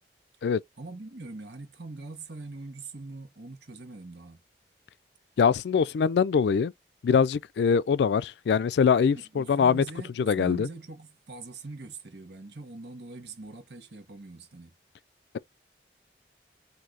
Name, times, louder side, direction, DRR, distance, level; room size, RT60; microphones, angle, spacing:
voice 1, 0.8-4.4 9.1-14.7, right 3 dB, 75° right, 1.2 m, -42 dB
voice 2, 5.4-6.7 7.0-9.8 10.2-10.7, left 6 dB, 70° left, 0.3 m, -23 dB
4.6 x 2.6 x 3.8 m
head